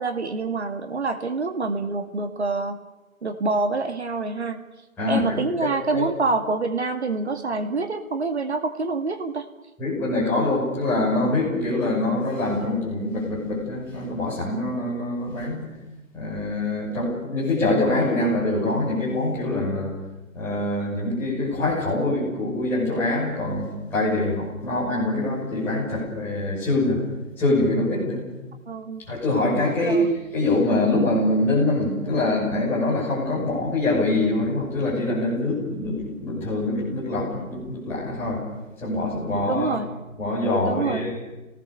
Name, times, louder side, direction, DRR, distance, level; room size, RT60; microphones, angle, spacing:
voice 1, 0.0-2.8 3.2-4.6 5.1-9.5 28.7-29.1 29.8-30.1 39.5-39.9 40.6-41.1, right 3 dB, 50° right, 7 dB, 2.3 m, -26 dB
voice 2, 5.0-5.4 5.9-6.1 9.8-15.7 16.1-19.9 20.3-27.0 27.4-28.2 29.1-30.0 30.3-38.4 38.8-39.8 40.2-41.2, left 2 dB, 5° left, -9 dB, 6.4 m, -24 dB
28.0 x 19.0 x 6.9 m, 1.0 s
figure-of-eight pair, 165°, 42 cm